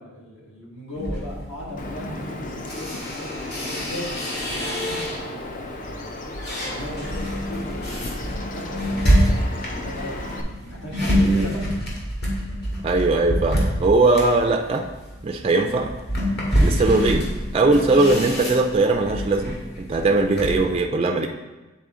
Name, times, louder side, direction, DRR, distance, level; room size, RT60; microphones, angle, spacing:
voice 1, 0.0-2.9 3.6-6.2 6.6-10.1 10.6-11.6, equal, 70° left, -4 dB, 1.8 m, -37 dB
sound 1, 0.9-5.5 5.9-20.6, equal, 55° left, 1.8 m, -26 dB
Bird vocalization bird call bird song, 1.8-10.4, left 2 dB, 40° left, 0.5 m, -34 dB
voice 2, 11.1-11.5 12.8-14.9 15.2-15.9 16.6-21.3, right 2 dB, 30° right, 4 dB, 0.3 m, -20 dB
8.2 x 4.2 x 3.7 m, 1.2 s
head